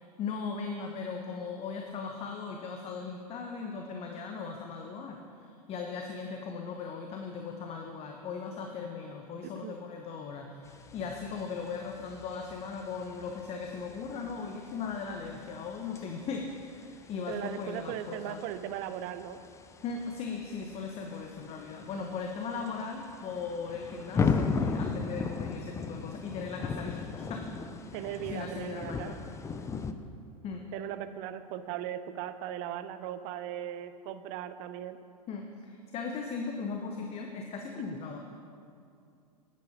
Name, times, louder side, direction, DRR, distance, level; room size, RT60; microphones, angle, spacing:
voice 1, 0.0-18.4 19.8-27.4 27.9-29.2 30.4-30.6 35.3-38.2, left 5 dB, 30° left, 3 dB, 0.9 m, -38 dB
voice 2, 9.4-9.8 17.3-19.4 27.9-29.2 30.7-35.0, right 10 dB, 45° right, 12 dB, 0.6 m, -38 dB
sound 1, 10.6-29.9, left 5 dB, 15° left, 0.5 m, -38 dB
10.5 x 8.5 x 5.7 m, 2.5 s
figure-of-eight pair, 90°, 20 cm